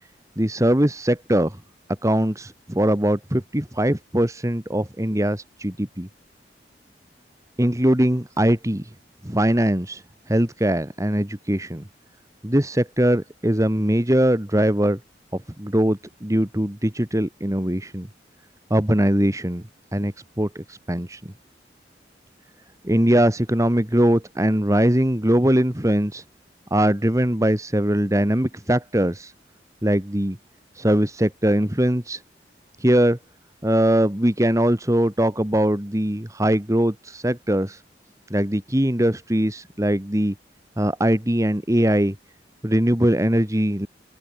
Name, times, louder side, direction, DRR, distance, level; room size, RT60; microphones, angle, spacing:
voice 1, 0.4-1.6 2.0-6.1 7.6-8.8 9.2-10.0 10.3-11.8 12.4-15.0 15.6-18.1 18.7-19.6 19.9-21.2 22.8-26.2 26.7-29.3 29.8-30.4 30.8-32.2 32.8-33.2 33.6-37.8 38.3-40.3 40.8-42.2 42.6-43.9, right 1 dB, 20° right, 1.8 m, -21 dB
open air
head